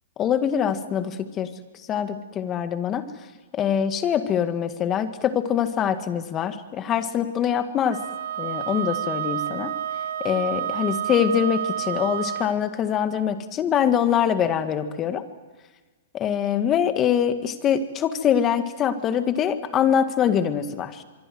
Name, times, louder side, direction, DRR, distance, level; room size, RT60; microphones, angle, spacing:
voice 1, 0.2-1.5 1.9-3.0 3.5-8.0 8.4-9.7 10.2-15.2 16.1-21.0, left 8 dB, 25° left, 9 dB, 1.9 m, -24 dB
Wind instrument woodwind instrument, 7.9-12.6, right 10 dB, 65° right, 1.9 m, -29 dB
24.5 x 24.0 x 7.8 m, 1.3 s
hypercardioid pair, 145°, 0 cm